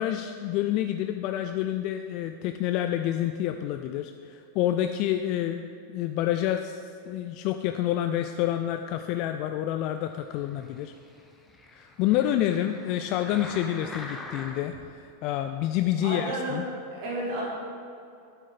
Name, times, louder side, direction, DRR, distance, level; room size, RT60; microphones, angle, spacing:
voice 1, 0.0-10.9 11.8-16.6, left 12 dB, 40° left, 7 dB, 0.3 m, -28 dB
sound 1, 10.3-14.9 15.5-15.6, left 2 dB, 10° left, 0.9 m, -44 dB
voice 2, 16.0-16.6 16.9-17.4, right 1 dB, 45° right, -5 dB, 2.1 m, -32 dB
9.3 x 8.2 x 3.8 m, 2.5 s
figure-of-eight pair, 90°, 0 cm